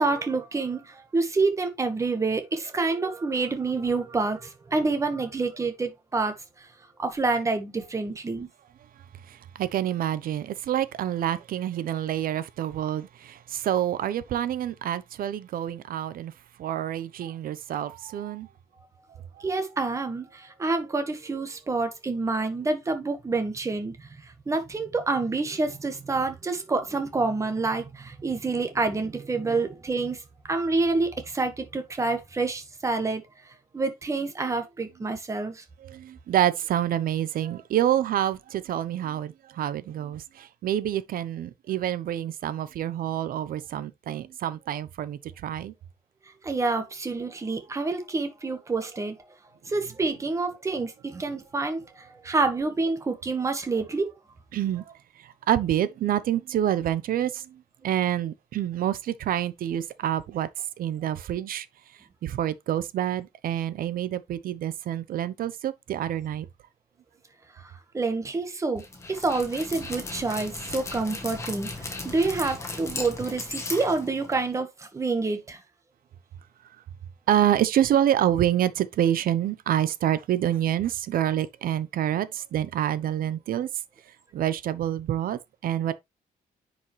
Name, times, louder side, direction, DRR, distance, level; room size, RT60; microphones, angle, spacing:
voice 1, 0.0-6.4 7.0-8.5 19.4-24.0 24.5-30.2 30.5-33.2 33.7-35.6 46.4-49.2 49.7-54.1 67.9-71.7 72.0-75.6, right 3 dB, 20° right, 1.5 m, -27 dB
voice 2, 9.3-16.3 16.6-18.5 35.8-45.7 54.5-54.8 55.5-60.5 60.8-61.7 62.2-66.5 77.3-83.7 84.3-85.9, right 11 dB, 65° right, 0.8 m, -27 dB
Dog, 68.8-74.6, left 2 dB, 20° left, 1.6 m, -36 dB
9.9 x 5.2 x 3.2 m
cardioid pair, 170°, 16 cm